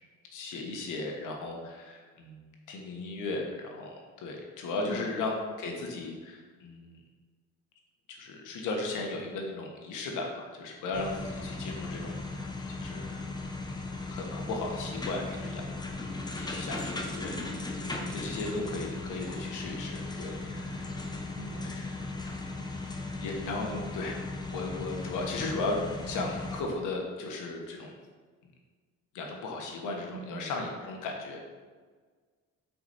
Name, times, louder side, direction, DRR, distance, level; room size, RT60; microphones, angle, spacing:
voice 1, 0.3-7.0 8.1-13.1 14.1-15.6 16.4-20.9 21.2-22.4 23.2-28.0 29.1-31.5, left 2 dB, 85° left, 1 dB, 1.3 m, -36 dB
voice 2, 4.8-5.2 15.3-15.6 20.5-20.8 21.3-22.0 30.1-30.6, right 3 dB, 75° right, -2 dB, 1.9 m, -44 dB
sound 1, 10.9-26.6, left 3 dB, 15° left, 0.9 m, -37 dB
6.0 x 4.9 x 4.2 m, 1.5 s
cardioid pair, 90°, 30 cm